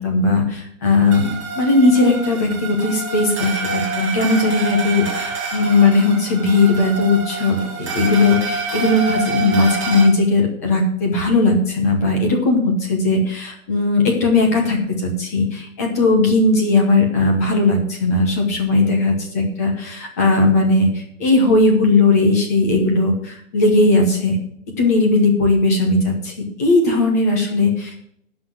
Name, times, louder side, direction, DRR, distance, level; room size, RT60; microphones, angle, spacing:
voice 1, 0.0-24.4 24.8-26.3 26.6-28.0, left 2 dB, 10° left, 2 dB, 1.0 m, -17 dB
sound 1, 1.1-10.1, right 4 dB, 20° right, 1.4 m, -27 dB
10.5 x 6.1 x 7.6 m, 0.71 s
hypercardioid pair, 170°, 41 cm